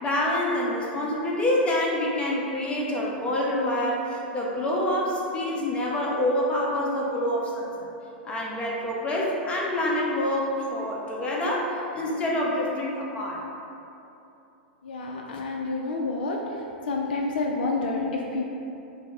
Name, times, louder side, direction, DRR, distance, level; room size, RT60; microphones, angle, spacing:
voice 1, 0.0-7.9 8.2-13.4, left 1 dB, 20° left, -3 dB, 0.7 m, -26 dB
voice 2, 14.9-16.4 16.9-18.5, left 3 dB, 65° left, 0 dB, 0.4 m, -28 dB
5.2 x 2.0 x 3.5 m, 2.8 s
figure-of-eight pair, 100°, 5 cm